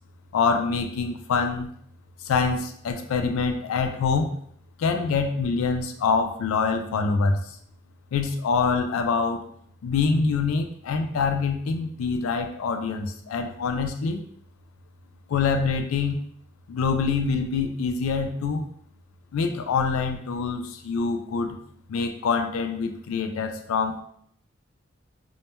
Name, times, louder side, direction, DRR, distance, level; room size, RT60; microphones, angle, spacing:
voice 1, 0.3-1.7 2.2-4.3 4.8-7.6 8.1-9.4 9.8-14.2 15.3-16.2 16.7-18.7 19.3-21.6 21.9-24.0, left 5 dB, 90° left, 5 dB, 0.3 m, -25 dB
2.2 x 2.1 x 2.9 m, 0.66 s
head